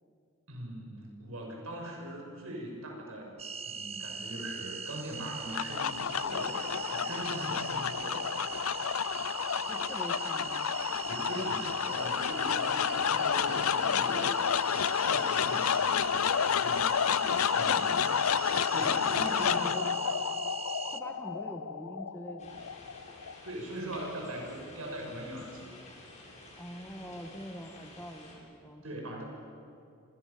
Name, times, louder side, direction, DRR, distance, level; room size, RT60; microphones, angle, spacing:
voice 1, 0.5-3.3 3.7-8.7 11.0-16.3 16.6-17.3 17.5-17.8 18.7-19.8 23.4-25.7 28.8-29.2, right 1 dB, 75° right, 1 dB, 6.7 m, -41 dB
sound 1, 3.4-21.0, right 6 dB, 30° right, 1.1 m, -40 dB
sound 2, 5.2-23.5, left 7 dB, 80° left, 0.6 m, -30 dB
voice 2, 9.7-10.8 11.3-11.9 17.2-18.4 18.9-19.9 20.9-22.7 26.6-29.1, equal, 10° left, 4 dB, 2.0 m, -44 dB
sound 3, 22.4-28.3, left 2 dB, 35° left, 7.6 m, -51 dB
29.5 x 27.5 x 7.1 m, 2.6 s
head